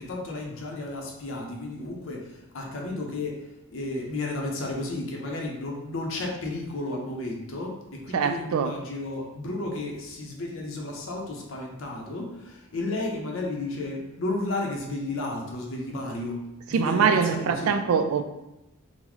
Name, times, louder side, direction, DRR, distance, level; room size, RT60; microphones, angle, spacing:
voice 1, 0.0-17.8, left 2 dB, 65° left, -1 dB, 0.6 m, -33 dB
voice 2, 8.1-8.7 16.7-18.2, right 6 dB, 80° right, 8 dB, 0.3 m, -23 dB
3.8 x 2.0 x 3.0 m, 0.93 s
head